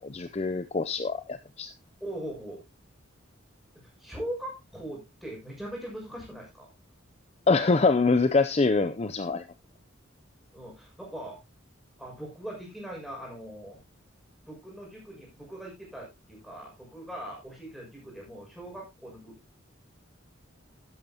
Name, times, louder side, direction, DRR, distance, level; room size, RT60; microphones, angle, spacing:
voice 1, 0.0-1.7 7.5-9.4, left 3 dB, 30° left, 11 dB, 0.5 m, -24 dB
voice 2, 2.0-2.6 4.0-6.7 10.5-11.4 12.0-13.8 14.5-19.3, right 1 dB, ahead, -3 dB, 6.3 m, -40 dB
12.5 x 10.5 x 2.9 m, 0.23 s
head